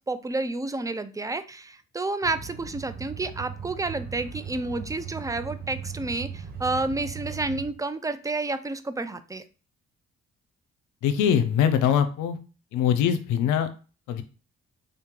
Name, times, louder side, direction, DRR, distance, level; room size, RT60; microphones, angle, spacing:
voice 1, 0.1-9.4, right 2 dB, 10° right, 11 dB, 0.5 m, -30 dB
sound 1, 2.2-7.7, right 7 dB, 30° right, 1.3 m, -38 dB
voice 2, 11.0-12.4 12.7-13.7 14.1-14.2, left 8 dB, 80° left, 9 dB, 0.6 m, -22 dB
3.7 x 2.8 x 3.7 m, 0.35 s
supercardioid pair, 55°, 30 cm